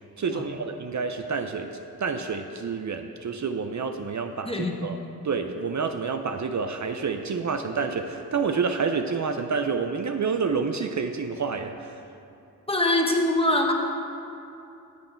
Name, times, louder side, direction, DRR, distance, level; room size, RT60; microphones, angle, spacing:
voice 1, 0.2-1.7 2.0-5.0 5.2-12.0, right 5 dB, 50° right, 6 dB, 0.6 m, -28 dB
voice 2, 12.7-13.7, left 1 dB, 15° left, 1 dB, 1.3 m, -23 dB
9.1 x 7.8 x 4.5 m, 2.8 s
cardioid pair, 40°, 38 cm